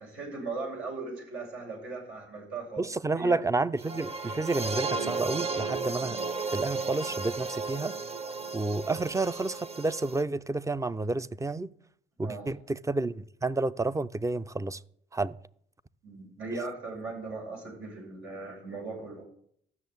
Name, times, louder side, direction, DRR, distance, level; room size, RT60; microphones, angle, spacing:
voice 1, 0.0-2.9 3.1-3.4 12.2-12.5 16.0-19.3, right 3 dB, 85° right, 6.1 m, -38 dB
voice 2, 2.8-6.2 6.5-8.0 8.5-11.7 12.2-14.8 15.1-15.3, right 3 dB, 15° right, 0.5 m, -30 dB
sound 1, 3.8-10.2, right 4 dB, 30° right, 0.9 m, -34 dB
13.5 x 6.5 x 9.4 m
cardioid pair, 90°, 20 cm